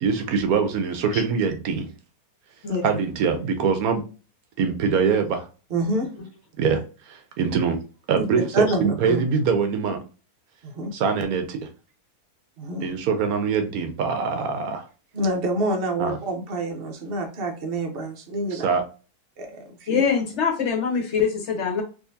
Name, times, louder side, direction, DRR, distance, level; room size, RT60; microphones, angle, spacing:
voice 1, 0.0-1.9 2.8-4.0 4.6-5.5 6.6-7.8 8.1-10.0 10.9-11.7 12.8-14.9 16.0-16.2 18.5-18.8, right 5 dB, 70° right, 7 dB, 1.1 m, -23 dB
voice 2, 5.7-6.1 8.1-8.2 8.5-9.2 10.6-10.9 12.6-12.9 15.1-18.7 19.4-20.0, right 2 dB, 45° right, 2 dB, 0.9 m, -27 dB
voice 3, 19.9-21.8, left 6 dB, 50° left, 1 dB, 1.2 m, -24 dB
3.7 x 2.7 x 2.6 m, 0.34 s
omnidirectional pair, 1.7 m